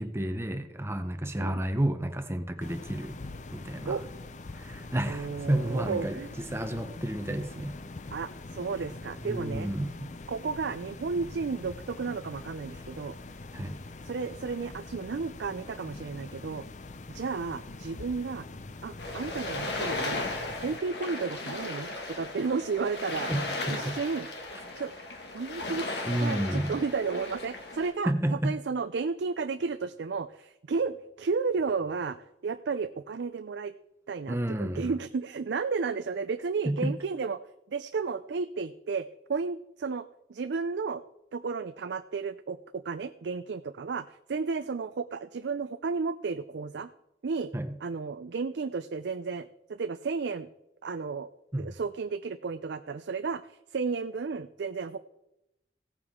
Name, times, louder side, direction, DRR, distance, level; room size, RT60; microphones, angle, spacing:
voice 1, 0.0-3.2 3.5-4.0 4.5-7.7 9.2-10.1 13.5-13.8 23.3-23.4 23.7-24.0 26.1-26.8 28.1-28.5 34.3-34.9 36.6-36.9 47.5-47.7 51.5-51.7, right 1 dB, 15° right, 8 dB, 0.7 m, -31 dB
sound 1, 2.6-20.8, left 3 dB, 45° left, 0.6 m, -44 dB
voice 2, 5.1-6.3 8.1-9.7 10.3-13.2 14.0-16.6 17.1-18.4 18.8-20.3 20.6-23.3 23.7-24.3 24.8-24.9 25.3-25.9 26.2-32.2 32.4-33.7 34.1-37.4 37.7-41.0 41.3-46.9 47.2-47.5 47.8-50.5 50.8-51.3 51.6-55.0, right 4 dB, 80° right, 10 dB, 0.5 m, -33 dB
sound 2, 19.0-27.9, left 2 dB, 70° left, 2.0 m, -36 dB
16.0 x 9.2 x 3.7 m, 0.88 s
head